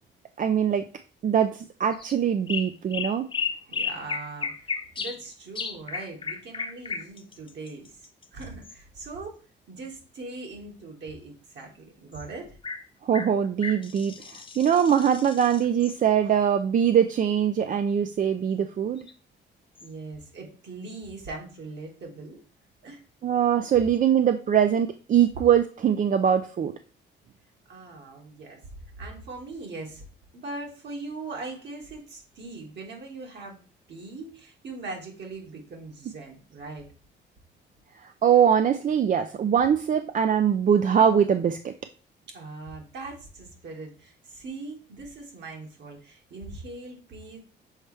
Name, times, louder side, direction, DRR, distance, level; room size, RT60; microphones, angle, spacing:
voice 1, 0.4-0.9 1.2-3.3 13.0-19.1 23.2-26.7 38.0-41.7, right 8 dB, 40° right, 8 dB, 0.4 m, -22 dB
sound 1, 1.9-2.1 2.5-5.2 5.5-8.8 12.1-12.2 12.6-12.8 13.1-16.0 19.0-19.1 19.8-19.9, left 5 dB, 25° left, 0.6 m, -34 dB
voice 2, 3.7-9.4 9.7-12.6 16.2-16.3 19.8-22.4 22.8-23.0 27.7-28.6 29.0-30.0 30.3-33.6 33.9-36.9 42.3-47.4, right 3 dB, 60° right, 0 dB, 2.0 m, -40 dB
6.4 x 4.3 x 3.3 m, 0.38 s
cardioid pair, 90°, 20 cm